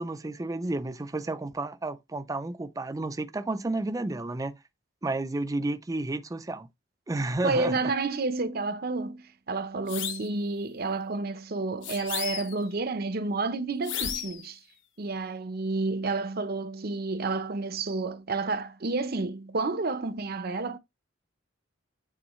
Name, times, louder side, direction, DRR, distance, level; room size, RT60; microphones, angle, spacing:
voice 1, 0.0-4.6 5.0-6.7 7.1-7.8, right 2 dB, 20° right, 0.4 m, -31 dB
voice 2, 7.4-14.6 15.0-20.8, right 3 dB, 50° right, 0.7 m, -30 dB
sound 1, 9.9-10.3 11.8-12.7 13.8-14.5, left 9 dB, 75° left, 1.1 m, -34 dB
8.7 x 3.9 x 3.1 m
head